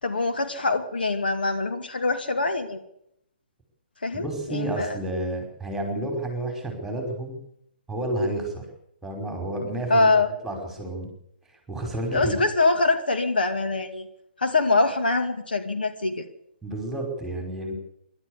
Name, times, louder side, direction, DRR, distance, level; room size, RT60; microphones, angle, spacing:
voice 1, 0.0-2.8 4.0-5.0 9.9-10.3 12.1-14.1 14.4-16.3, left 3 dB, 65° left, 7 dB, 2.3 m, -24 dB
voice 2, 4.1-7.4 7.9-8.6 9.0-10.1 10.4-11.1 11.7-12.4 16.6-17.7, right 1 dB, ahead, 3 dB, 5.3 m, -30 dB
26.0 x 12.5 x 8.4 m, 0.75 s
figure-of-eight pair, 130°, 6 cm